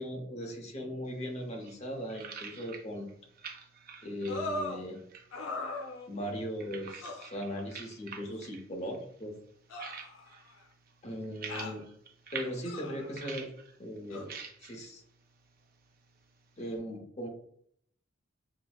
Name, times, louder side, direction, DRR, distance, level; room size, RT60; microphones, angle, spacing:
voice 1, 0.0-3.1 4.0-5.0 6.1-9.3 11.0-11.8 12.3-13.5 13.8-14.3 14.6-15.0 16.6-17.3, equal, 35° left, 2 dB, 0.8 m, -38 dB
sound 1, 1.1-16.8, right 6 dB, 50° right, 0.5 m, -49 dB
sound 2, 4.3-4.8 5.3-6.3 7.0-7.2 8.3-8.4 9.7-10.6 11.5-11.8 12.6-13.1 14.1-14.3, left 2 dB, 80° left, 0.7 m, -39 dB
5.9 x 2.0 x 2.3 m, 0.66 s
head